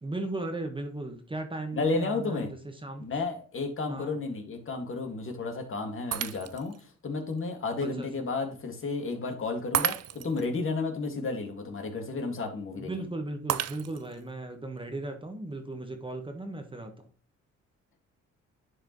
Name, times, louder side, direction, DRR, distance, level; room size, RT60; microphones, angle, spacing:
voice 1, 0.0-2.5 2.8-3.1 3.9-4.2 7.8-8.1 12.8-17.1, right 2 dB, 15° right, 5 dB, 1.3 m, -36 dB
voice 2, 1.7-2.5 3.0-13.1, left 3 dB, 45° left, 3 dB, 2.1 m, -32 dB
Shatter, 6.1-6.8 7.4-7.5 9.7-10.5 13.5-14.2, right 11 dB, 55° right, 0.6 m, -31 dB
10.5 x 4.7 x 3.1 m, 0.39 s
cardioid pair, 90°, 30 cm